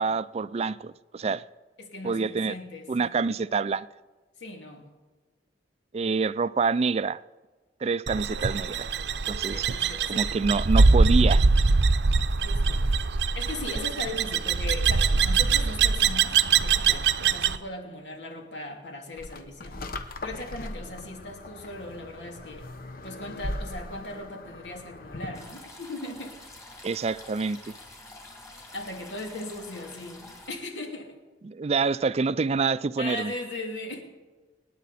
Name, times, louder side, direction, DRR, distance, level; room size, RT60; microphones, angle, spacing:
voice 1, 0.0-1.4 2.0-2.5 2.9-3.9 5.9-7.2 7.8-8.9 9.3-9.7 10.1-11.4 26.8-27.7 31.4-33.3, right 4 dB, 35° right, 0.4 m, -26 dB
voice 2, 1.8-3.2 4.4-4.9 9.4-10.4 12.4-12.9 13.4-22.7 23.0-26.4 28.7-31.2 33.0-34.0, left 1 dB, 85° left, 2.8 m, -38 dB
sound 1, 8.1-17.6, right 4 dB, 70° right, 0.7 m, -23 dB
sound 2, 19.2-25.5, left 1 dB, 55° left, 1.0 m, -39 dB
sound 3, 25.3-30.5, left 2 dB, 20° left, 2.9 m, -47 dB
27.0 x 9.5 x 4.2 m
head